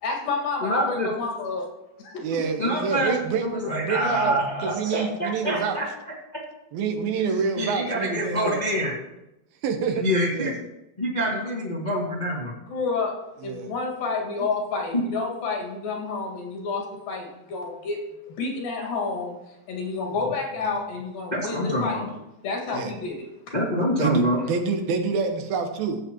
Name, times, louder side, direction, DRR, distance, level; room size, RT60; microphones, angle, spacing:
voice 1, 0.0-1.7 2.0-2.4 12.7-13.2 13.4-18.1 18.4-22.0 22.4-23.3, left 4 dB, 70° left, 0 dB, 3.7 m, -29 dB
voice 2, 0.6-1.1 2.6-5.8 7.3-8.9 10.0-10.5 11.0-12.5 14.9-15.0 21.3-22.1 23.5-24.4, equal, 35° left, -5 dB, 0.6 m, -26 dB
voice 3, 2.2-3.5 3.8-4.4 4.6-5.8 6.7-8.6 9.6-10.0 10.3-10.5 13.4-13.7 20.5-20.8 22.7-22.9 24.0-24.2 24.5-26.0, right 5 dB, 85° right, 5 dB, 3.0 m, -27 dB
15.5 x 7.8 x 3.0 m, 0.90 s
omnidirectional pair, 4.1 m